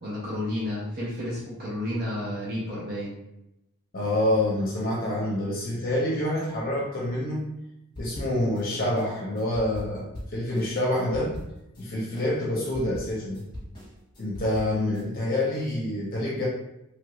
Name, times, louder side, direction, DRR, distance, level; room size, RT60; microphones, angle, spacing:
voice 1, 0.0-3.1, left 1 dB, 45° right, -8 dB, 0.7 m, -31 dB
voice 2, 3.9-7.5 8.0-11.3 11.8-13.4 14.2-16.4, left 1 dB, 40° left, -5 dB, 0.6 m, -27 dB
sound 1, 8.0-8.6 9.0-11.8 12.1-15.0, equal, 20° left, 1.0 m, -41 dB
3.1 x 2.4 x 3.0 m, 0.87 s
head